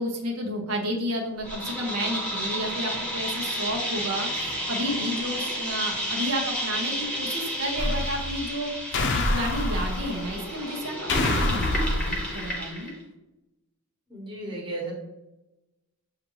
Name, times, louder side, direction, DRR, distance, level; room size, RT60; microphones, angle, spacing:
voice 1, 0.0-12.9, equal, 85° right, 1 dB, 0.8 m, -31 dB
sound 1, 1.4-12.9, equal, 5° left, 0.9 m, -31 dB
sound 2, 7.8-8.5 8.9-10.3 11.1-12.5, left 2 dB, 50° left, 0.5 m, -27 dB
voice 2, 14.1-14.9, right 2 dB, 20° right, -3 dB, 1.0 m, -34 dB
6.4 x 2.5 x 3.0 m, 0.98 s
head